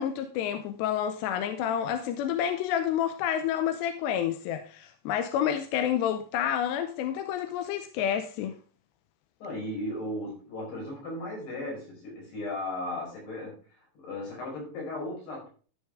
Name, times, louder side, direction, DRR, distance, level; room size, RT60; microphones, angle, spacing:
voice 1, 0.0-8.6, left 9 dB, 80° left, 2.7 m, -29 dB
voice 2, 9.4-13.6 14.0-15.5, left 1 dB, 60° left, 7.4 m, -36 dB
13.0 x 6.2 x 3.6 m
omnidirectional pair, 5.3 m